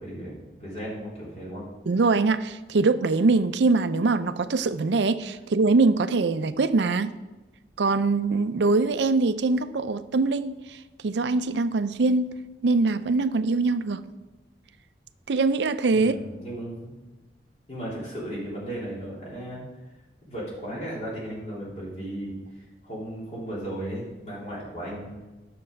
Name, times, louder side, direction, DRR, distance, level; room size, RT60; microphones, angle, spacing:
voice 1, 0.0-1.6 15.9-17.0 17.7-19.6 20.3-25.2, right 1 dB, 35° left, -6 dB, 3.4 m, -35 dB
voice 2, 1.9-7.1 7.8-10.8 11.0-12.3 12.6-14.0 15.3-16.2, right 3 dB, 75° right, 12 dB, 0.5 m, -23 dB
9.8 x 6.8 x 5.2 m, 1.1 s
head